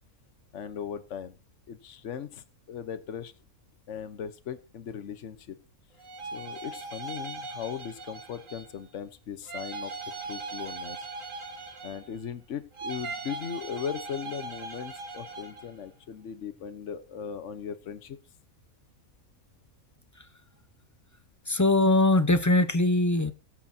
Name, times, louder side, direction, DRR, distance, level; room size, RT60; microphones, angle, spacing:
voice 1, 0.5-1.4 1.7-3.3 3.9-5.6 6.3-9.9 10.2-11.0 11.8-18.2, left 8 dB, 60° left, 1.3 m, -38 dB
sound 1, 6.0-8.8 9.5-12.3 12.7-15.7, right 3 dB, 65° right, 2.2 m, -39 dB
voice 2, 21.5-23.3, left 2 dB, 15° left, 0.6 m, -22 dB
19.0 x 8.2 x 2.8 m
omnidirectional pair, 1.5 m